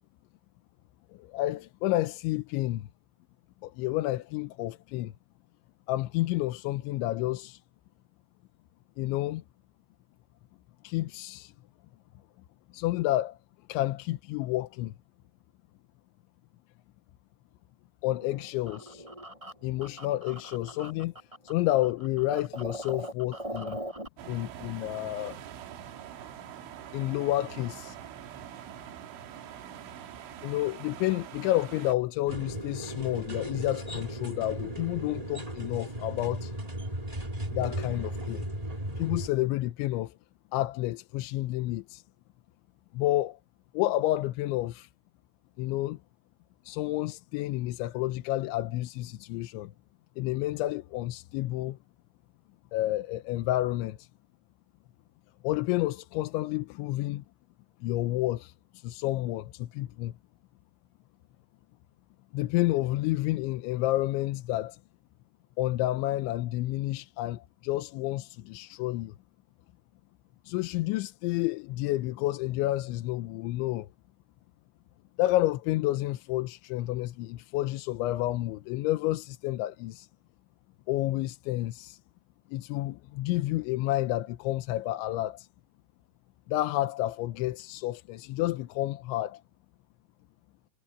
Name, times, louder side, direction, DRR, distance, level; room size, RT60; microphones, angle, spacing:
voice 1, 1.1-2.9 3.6-5.1 5.9-7.6 9.0-9.4 10.8-11.5 12.7-13.4 13.7-14.9 18.0-19.1 19.6-23.8 24.3-25.4 26.9-28.0 30.4-36.5 37.5-38.5 39.0-40.2 40.5-42.0 42.9-43.4 43.7-44.9 45.6-46.0 46.6-49.7 50.2-51.8 52.7-54.1 55.4-57.2 57.8-60.1 62.3-64.8 65.6-69.1 70.5-73.9 75.2-80.1 80.9-82.0 82.5-85.5 86.5-89.4, left 16 dB, 85° left, 3.2 m, -30 dB
sound 1, 18.1-21.5 21.8-24.1, right 1 dB, 5° right, 6.5 m, -40 dB
sound 2, 24.2-32.0, right 10 dB, 90° right, 4.3 m, -44 dB
sound 3, 32.3-39.3, right 1 dB, 70° right, 0.3 m, -36 dB
omnidirectional pair, 5.3 m